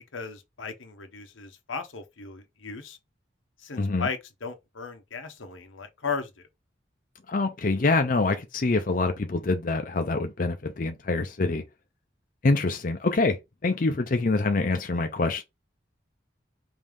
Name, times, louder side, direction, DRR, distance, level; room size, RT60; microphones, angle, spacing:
voice 1, 0.1-3.0 3.6-6.4, left 5 dB, 85° left, 1.0 m, -36 dB
voice 2, 3.8-4.1 7.3-11.6 12.4-13.4 13.6-15.4, left 3 dB, 45° left, 0.5 m, -25 dB
5.2 x 2.8 x 3.6 m
head